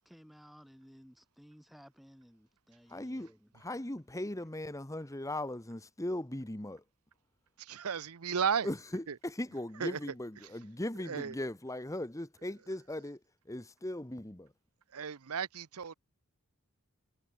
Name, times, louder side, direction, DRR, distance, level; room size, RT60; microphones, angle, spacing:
voice 1, 0.0-3.8, equal, ahead, 6.1 m, -57 dB
voice 2, 2.9-6.8 8.6-13.2 13.5-14.5, left 1 dB, 15° left, 1.3 m, -38 dB
voice 3, 7.6-8.7 9.1-9.2 9.8-10.0 10.4-10.5 11.0-11.4 14.9-15.9, right 7 dB, 85° right, 0.7 m, -34 dB
head